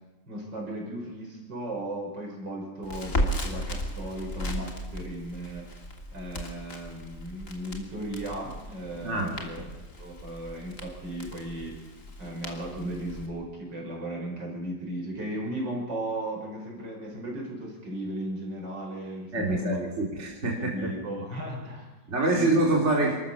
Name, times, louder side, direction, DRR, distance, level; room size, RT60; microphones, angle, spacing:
voice 1, 0.3-5.7 6.1-9.6 10.0-11.8 12.2-19.8 20.4-21.9 22.3-22.6, right 1 dB, 70° right, 0 dB, 6.4 m, -36 dB
Crackle, 2.8-13.3, equal, 40° left, 3.1 m, -36 dB
voice 2, 9.0-9.7 19.3-20.9 22.1-23.2, right 2 dB, 35° right, -1 dB, 3.5 m, -26 dB
29.5 x 13.5 x 7.1 m, 1.2 s
omnidirectional pair, 2.0 m